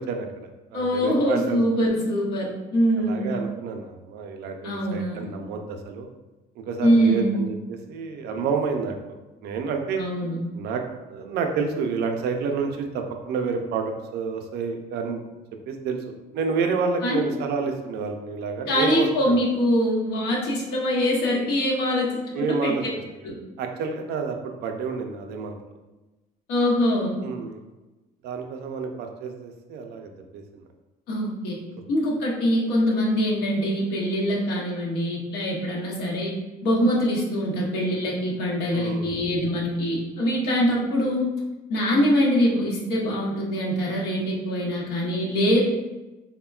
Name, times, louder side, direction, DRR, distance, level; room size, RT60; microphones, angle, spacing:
voice 1, 0.0-1.6 3.0-6.1 6.6-8.9 9.4-10.0 10.5-10.8 11.1-15.3 15.7-19.4 22.3-22.8 23.6-25.6 27.2-27.6 28.2-30.4 38.7-39.1, right 5 dB, 75° right, 4 dB, 0.4 m, -29 dB
voice 2, 0.7-3.4 4.6-5.3 6.8-7.4 10.0-10.4 17.0-17.2 18.7-22.7 23.2-23.4 26.5-27.2 31.1-31.6 31.9-36.3 36.6-41.3 41.7-45.6, equal, 80° left, -3 dB, 0.8 m, -23 dB
3.5 x 2.1 x 2.3 m, 1.1 s
cardioid pair, 110°, 17 cm